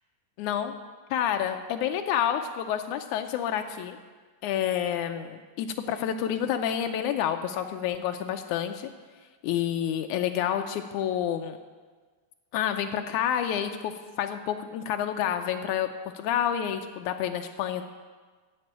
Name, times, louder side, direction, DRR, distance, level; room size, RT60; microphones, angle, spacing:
voice 1, 0.4-0.7 1.1-4.0 4.4-8.9 9.4-11.6 12.5-17.8, left 9 dB, 85° left, 7 dB, 1.7 m, -29 dB
13.5 x 5.3 x 8.7 m, 1.4 s
omnidirectional pair, 4.0 m